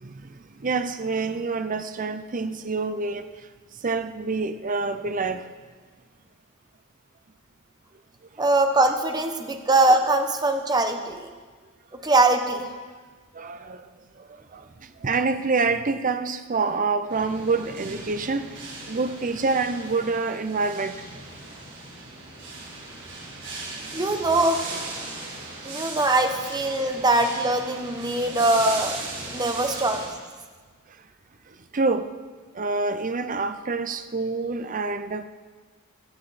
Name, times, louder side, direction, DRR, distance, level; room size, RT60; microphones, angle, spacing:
voice 1, 0.0-3.3 3.8-5.5 13.3-13.9 14.2-21.0 31.7-32.1 32.5-35.3, right 4 dB, 40° right, 0.6 m, -27 dB
voice 2, 8.4-11.3 12.0-12.7 23.9-24.6 25.6-29.0 29.3-30.0, right 2 dB, 20° right, 1.0 m, -22 dB
sound 1, 17.1-30.1, right 3 dB, 60° right, 5.1 m, -38 dB
16.5 x 12.0 x 4.2 m
head